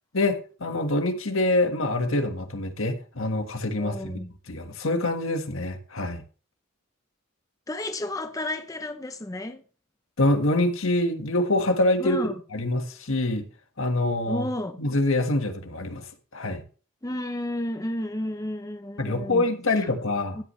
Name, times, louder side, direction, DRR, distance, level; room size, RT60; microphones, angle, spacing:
voice 1, 0.1-4.2 4.5-6.2 10.2-13.5 13.8-14.5 14.8-16.6 19.0-20.4, left 2 dB, 75° left, 1.6 m, -25 dB
voice 2, 3.8-4.3 7.7-9.6 12.0-12.3 14.3-14.8 17.0-19.9 20.3-20.4, left 1 dB, 15° left, 0.7 m, -32 dB
15.5 x 8.6 x 3.2 m
head